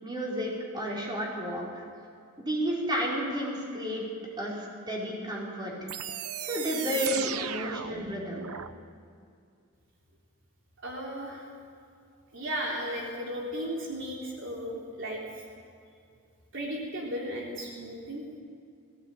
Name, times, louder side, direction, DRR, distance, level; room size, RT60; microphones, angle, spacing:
voice 1, 0.0-1.8 2.4-4.0 4.4-5.7 6.1-8.4, equal, 20° right, -4 dB, 4.9 m, -32 dB
sound 1, 5.9-8.7, right 9 dB, 75° right, 0.8 m, -36 dB
voice 2, 10.8-11.5 12.3-15.2 16.5-18.2, equal, 60° right, -2 dB, 3.5 m, -35 dB
19.0 x 17.5 x 9.0 m, 2.3 s
head